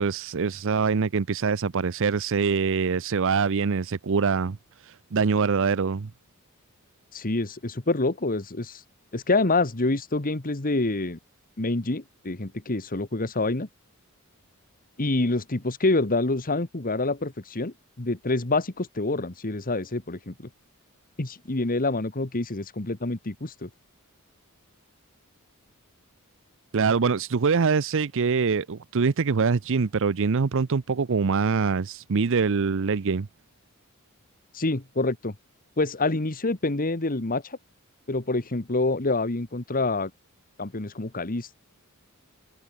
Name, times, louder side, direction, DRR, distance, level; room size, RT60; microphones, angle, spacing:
voice 1, 0.0-4.6 4.8-6.1 26.7-33.3, right 5 dB, 60° right, 0.6 m, -24 dB
voice 2, 7.1-8.8 9.1-11.2 11.6-13.7 15.0-20.5 21.2-23.7 34.5-35.3 35.8-37.6 38.1-40.1 40.6-41.5, left 2 dB, 40° left, 1.6 m, -27 dB
head